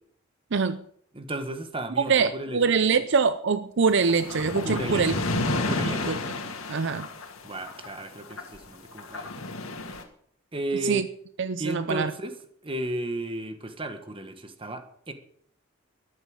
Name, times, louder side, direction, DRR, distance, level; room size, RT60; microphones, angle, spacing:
voice 1, 0.5-0.8 2.1-5.1 6.1-6.2 6.7-7.1 10.8-11.1 11.4-12.1, right 5 dB, 60° right, 0.6 m, -24 dB
voice 2, 1.1-2.6 4.6-5.0 5.6-6.1 7.4-9.4 10.5-11.1 11.6-12.4 12.6-15.1, right 1 dB, 25° right, 1.5 m, -34 dB
sound 1, 3.9-8.6 8.9-10.0, left 2 dB, 85° left, 2.2 m, -31 dB
14.0 x 11.0 x 6.5 m
head